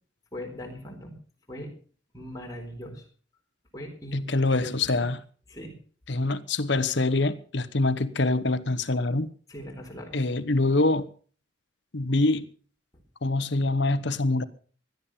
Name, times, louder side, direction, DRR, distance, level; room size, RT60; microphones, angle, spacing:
voice 1, 0.3-1.2 1.5-1.7 2.1-3.1 3.7-5.1 5.5-5.7 9.5-10.2 12.9-13.0, equal, 15° left, 4.2 m, -40 dB
voice 2, 4.1-5.2 6.1-9.3 10.1-11.0 11.9-12.5 13.2-14.4, left 2 dB, 60° left, 1.1 m, -25 dB
17.0 x 12.0 x 5.7 m
head